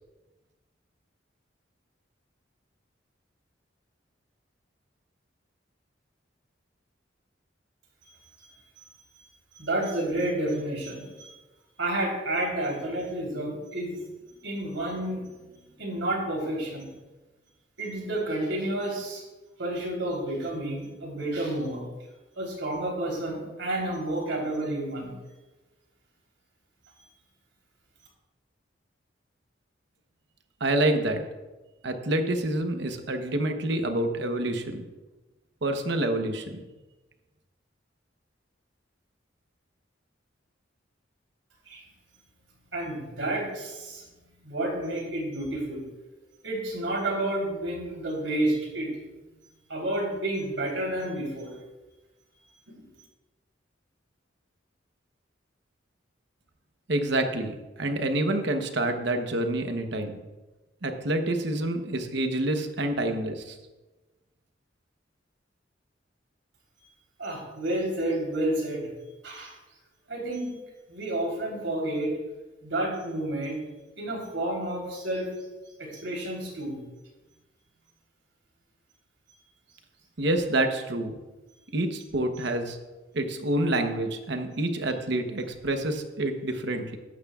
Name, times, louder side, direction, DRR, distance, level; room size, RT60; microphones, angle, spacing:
voice 1, 9.2-11.3 11.8-14.0 14.4-15.2 15.8-16.9 17.8-19.2 19.6-21.8 22.4-25.2 41.7-41.8 42.7-45.8 46.4-49.1 49.7-51.5 52.7-52.9 67.2-68.9 69.2-69.5 70.1-70.5 70.9-72.1 72.6-73.6 74.0-75.3 75.8-76.8, right 1 dB, 85° right, -1 dB, 3.6 m, -30 dB
voice 2, 30.6-31.2 31.8-34.8 35.6-36.6 56.9-60.2 60.8-63.6 80.2-81.2 81.7-82.8 83.1-87.0, right 1 dB, 65° right, 6 dB, 1.0 m, -27 dB
14.0 x 11.5 x 2.4 m, 1.1 s
head